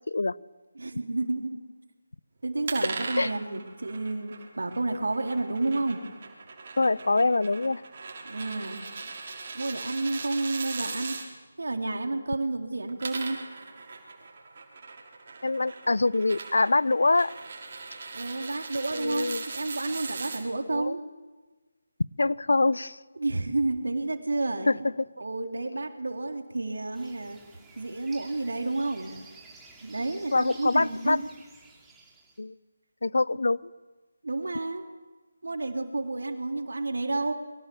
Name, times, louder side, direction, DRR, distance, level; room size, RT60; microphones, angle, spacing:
voice 1, 0.8-1.6 2.4-6.0 8.2-8.8 9.5-11.2 11.6-13.4 18.1-21.0 23.2-24.8 25.2-27.4 27.8-29.1 29.8-31.3 34.2-34.9 35.4-37.3, right 2 dB, 65° right, 4 dB, 3.7 m, -30 dB
sound 1, 2.7-11.3 12.8-20.4, right 4 dB, 40° right, 5.8 m, -39 dB
voice 2, 6.8-7.8 15.4-17.3 18.9-19.4 20.7-21.0 22.2-23.0 24.7-25.1 30.3-31.2 32.4-32.5 33.0-33.6, left 3 dB, 65° left, 19 dB, 0.8 m, -24 dB
sound 2, 26.9-32.4, right 3 dB, 5° right, 3.1 m, -52 dB
29.0 x 23.5 x 7.2 m, 1.3 s
figure-of-eight pair, 155°, 0 cm